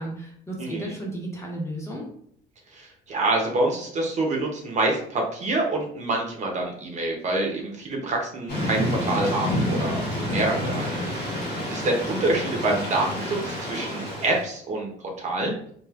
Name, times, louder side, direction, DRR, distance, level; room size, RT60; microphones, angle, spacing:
voice 1, 0.0-2.1, right 1 dB, 15° left, -2 dB, 0.9 m, -33 dB
voice 2, 0.6-0.9 2.7-10.0 10.3-15.5, right 2 dB, 45° right, 1 dB, 0.6 m, -27 dB
Thunder / Rain, 8.5-14.4, left 1 dB, 85° left, 1.2 m, -28 dB
3.3 x 2.4 x 2.3 m, 0.64 s
cardioid pair, 110°, 17 cm